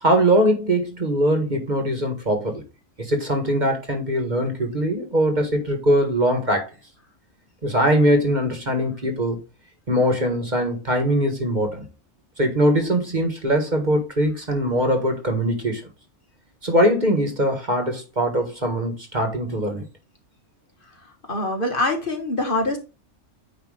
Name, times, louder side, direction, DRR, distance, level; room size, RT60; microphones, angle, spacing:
voice 1, 0.0-2.6 3.0-6.7 7.6-9.4 9.9-11.9 12.4-15.8 16.6-19.8, equal, 40° right, 1.7 m, -21 dB
voice 2, 21.3-22.8, left 2 dB, 45° left, 1.7 m, -24 dB
9.4 x 3.2 x 4.9 m
omnidirectional pair, 1.2 m